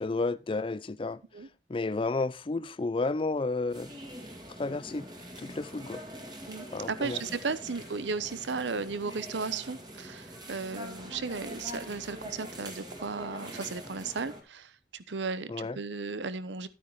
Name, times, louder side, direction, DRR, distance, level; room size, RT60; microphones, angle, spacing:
voice 1, 0.0-1.2 1.7-3.9 4.6-5.1 5.4-6.0 6.7-7.2 15.5-15.8, left 3 dB, 30° left, 0.4 m, -31 dB
sound 1, 3.7-14.4, equal, 25° right, 2.0 m, -44 dB
voice 2, 6.5-16.7, right 4 dB, 90° right, 0.8 m, -35 dB
12.0 x 9.1 x 3.1 m
head